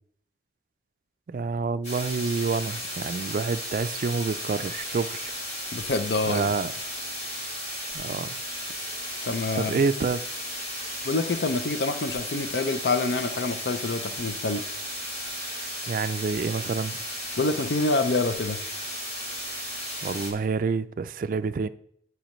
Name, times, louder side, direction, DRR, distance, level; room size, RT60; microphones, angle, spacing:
voice 1, 1.3-5.3 6.3-6.7 7.9-8.4 9.5-10.2 15.9-17.0 20.0-21.7, right 4 dB, 50° right, 0.3 m, -28 dB
sound 1, 1.8-20.3, equal, 40° left, 3.0 m, -35 dB
voice 2, 5.7-6.5 9.2-9.7 11.0-14.6 17.4-18.6, left 3 dB, 70° left, 0.6 m, -26 dB
14.0 x 4.7 x 3.1 m
head